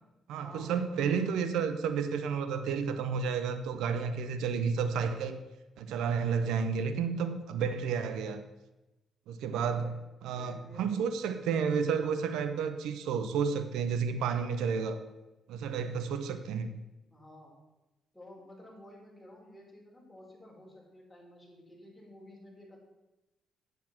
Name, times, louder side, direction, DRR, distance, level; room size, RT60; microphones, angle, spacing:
voice 1, 0.3-5.4 5.8-8.4 9.3-9.9 10.2-15.0 15.5-16.8, right 6 dB, 85° right, 10 dB, 0.7 m, -31 dB
voice 2, 9.5-10.0 10.3-11.1 17.1-17.6 18.1-22.8, left 1 dB, 5° left, -3 dB, 4.1 m, -52 dB
8.8 x 8.3 x 5.9 m, 1.0 s
cardioid pair, 90°, 0 cm